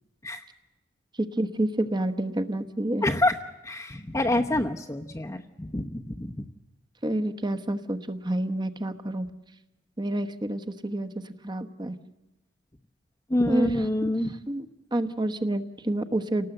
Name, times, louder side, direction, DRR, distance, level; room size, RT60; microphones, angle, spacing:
voice 1, 1.4-3.0 7.0-9.3 10.0-11.1 11.4-12.0 13.5-13.8 14.5-14.7 14.9-16.5, right 1 dB, 25° right, 10 dB, 1.2 m, -28 dB
voice 2, 3.0-3.4 3.6-6.3 13.3-14.3, left 1 dB, 20° left, 0 dB, 0.9 m, -26 dB
29.0 x 18.5 x 7.9 m, 1.0 s
head